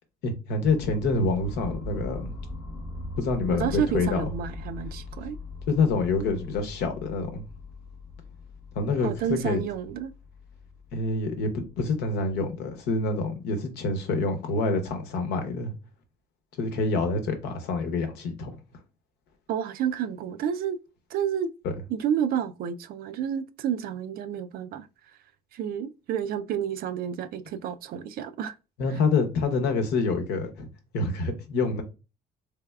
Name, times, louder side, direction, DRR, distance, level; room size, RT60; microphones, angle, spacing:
voice 1, 0.2-2.3 3.2-4.2 5.7-7.4 8.7-9.6 10.9-11.5 11.8-15.7 16.6-18.5 28.8-30.7 30.9-31.8, left 3 dB, 85° left, 0.9 m, -27 dB
sound 1, 0.7-12.6, left 3 dB, 5° left, 0.7 m, -40 dB
voice 2, 3.5-5.4 9.0-10.1 19.5-20.8 21.1-21.5 21.9-25.2 25.5-28.6, right 9 dB, 65° right, 0.4 m, -30 dB
3.4 x 3.3 x 2.3 m
cardioid pair, 110°, 17 cm